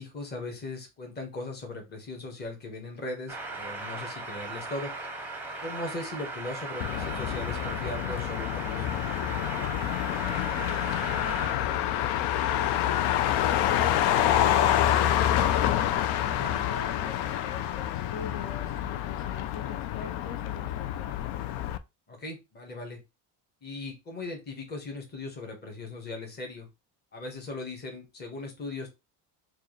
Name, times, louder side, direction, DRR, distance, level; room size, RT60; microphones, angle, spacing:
voice 1, 0.0-4.9 5.6-8.9 16.3-16.6 22.1-23.0 23.6-26.7 27.1-28.9, left 2 dB, 25° left, 2 dB, 1.2 m, -38 dB
sound 1, 3.3-11.5, right 3 dB, 5° right, 0.7 m, -38 dB
Motor vehicle (road), 6.8-21.8, left 11 dB, 90° left, 0.5 m, -27 dB
voice 2, 10.0-15.6 16.2-21.3, left 4 dB, 60° left, 3 dB, 1.0 m, -45 dB
4.6 x 2.4 x 3.1 m, 0.24 s
cardioid pair, 150°, 39 cm